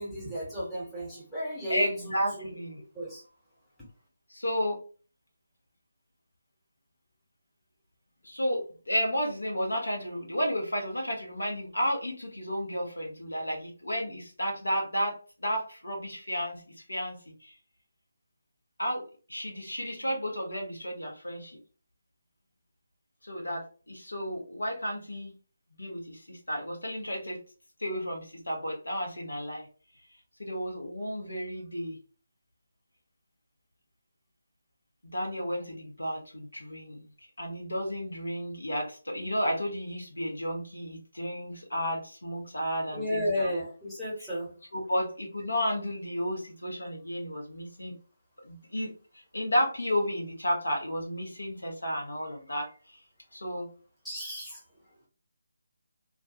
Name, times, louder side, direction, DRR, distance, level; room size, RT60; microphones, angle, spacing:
voice 1, 0.0-1.9 2.4-2.5 2.9-3.2 42.9-44.5 54.0-54.6, equal, ahead, -9 dB, 1.0 m, -33 dB
voice 2, 1.7-2.8 4.3-4.8 8.2-16.6 16.9-17.5 18.8-21.6 23.2-25.3 25.8-27.4 27.8-29.7 30.4-32.0 35.0-37.1 37.4-43.5 44.2-44.3 44.7-48.0 48.4-48.9 49.3-53.0 53.3-53.7, equal, 75° left, 0 dB, 0.8 m, -32 dB
2.2 x 2.2 x 2.7 m, 0.37 s
figure-of-eight pair, 150°, 0 cm